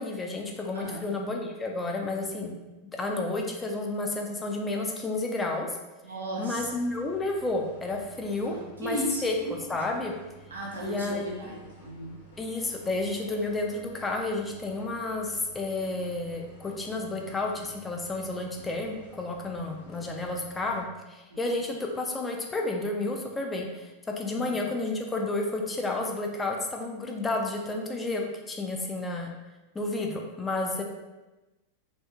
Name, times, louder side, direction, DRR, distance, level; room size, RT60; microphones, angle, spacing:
voice 1, 0.0-2.5 2.9-5.7 6.4-9.4 9.7-10.1 10.8-11.5 12.4-23.9 24.2-29.3 29.7-30.8, left 2 dB, 15° left, 1 dB, 0.4 m, -31 dB
voice 2, 6.0-6.7 8.4-9.2 10.5-12.2 24.3-24.5 28.7-28.8, right 1 dB, 70° right, -3 dB, 0.7 m, -35 dB
sound 1, 6.6-20.9, right 3 dB, 55° left, 1.0 m, -52 dB
3.3 x 2.7 x 2.3 m, 1.1 s
figure-of-eight pair, 90°, 0 cm